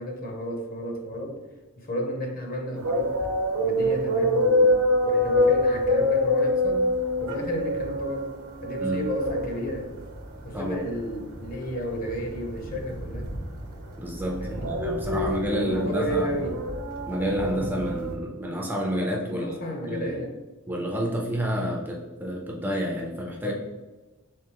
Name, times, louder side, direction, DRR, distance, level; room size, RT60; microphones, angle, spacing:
voice 1, 0.0-1.4 1.8-3.2 3.6-8.3 8.6-9.9 10.4-13.3 14.4-14.8 15.2-15.3 15.6-16.6 19.3-20.4 23.4-23.5, equal, 40° left, 2 dB, 0.7 m, -33 dB
sound 1, 2.8-18.2, left 1 dB, 85° right, 0.9 m, -26 dB
voice 2, 14.0-16.3 17.1-20.1 20.7-23.5, equal, 10° right, -1 dB, 0.4 m, -29 dB
3.5 x 3.5 x 2.8 m, 1.2 s
head